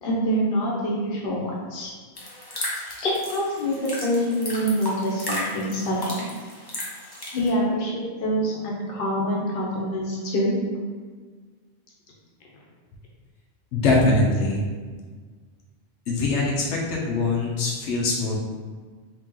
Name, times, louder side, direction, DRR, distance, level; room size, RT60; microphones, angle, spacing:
voice 1, 0.0-1.9 3.0-6.1 7.3-10.5, equal, 60° left, -4 dB, 1.0 m, -25 dB
sound 1, 2.2-7.5, left 1 dB, 25° left, 0.6 m, -34 dB
voice 2, 13.7-14.6 16.1-18.4, left 2 dB, 90° left, -2 dB, 0.9 m, -22 dB
2.9 x 2.9 x 3.6 m, 1.5 s
omnidirectional pair, 1.1 m